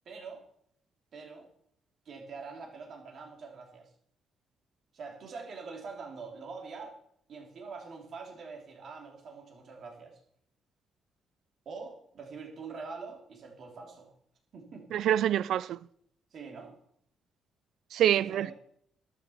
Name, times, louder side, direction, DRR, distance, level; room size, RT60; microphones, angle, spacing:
voice 1, 0.1-0.4 1.1-1.5 2.1-3.9 4.9-7.0 7.3-10.2 11.7-14.1 14.5-14.9 16.3-16.8 18.2-18.5, right 4 dB, 60° right, 3.5 m, -44 dB
voice 2, 14.9-15.8 17.9-18.5, right 11 dB, 75° right, 0.4 m, -26 dB
12.0 x 7.0 x 7.2 m
cardioid pair, 90°, 0 cm